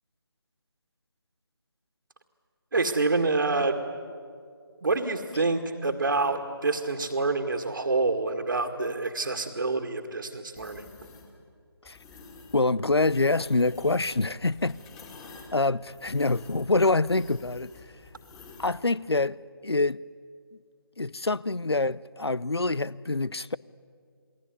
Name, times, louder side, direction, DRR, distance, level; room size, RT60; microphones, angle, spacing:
voice 1, 2.7-3.8 4.8-10.9, right 3 dB, 60° right, 2.1 m, -27 dB
sound 1, 10.5-11.3 11.8-12.6 12.9-18.8, left 4 dB, 15° left, 2.7 m, -49 dB
voice 2, 12.5-14.8 15.5-17.7 18.6-20.0 21.0-23.6, left 3 dB, 85° left, 0.7 m, -26 dB
28.0 x 21.5 x 9.6 m
figure-of-eight pair, 155°, 13 cm